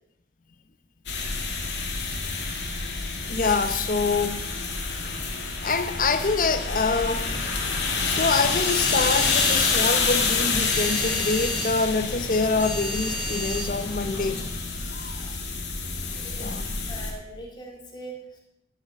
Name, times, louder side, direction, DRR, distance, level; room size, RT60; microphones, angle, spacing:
sound 1, 1.1-17.1, left 4 dB, 70° left, 2.2 m, -28 dB
voice 1, 3.3-4.4 4.9-5.0 5.6-7.3 8.1-14.4 16.4-16.8, left 4 dB, 45° left, 0.8 m, -25 dB
sound 2, 7.1-14.5, equal, 10° right, 2.8 m, -35 dB
voice 2, 16.1-16.5 16.9-18.4, right 2 dB, 25° left, 2.4 m, -41 dB
12.5 x 6.6 x 6.2 m
head